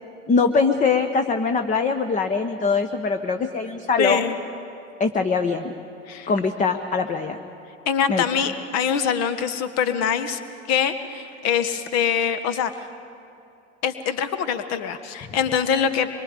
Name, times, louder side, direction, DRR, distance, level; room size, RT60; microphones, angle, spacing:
voice 1, 0.3-4.2 5.0-5.7 6.3-7.4 8.1-8.2, left 4 dB, 20° left, 7 dB, 1.0 m, -22 dB
voice 2, 4.0-4.3 6.1-6.3 7.8-10.4 10.7-12.7 13.8-16.1, left 7 dB, 40° left, 11 dB, 1.4 m, -24 dB
25.5 x 23.5 x 5.2 m, 2.6 s
figure-of-eight pair, 75°, 38 cm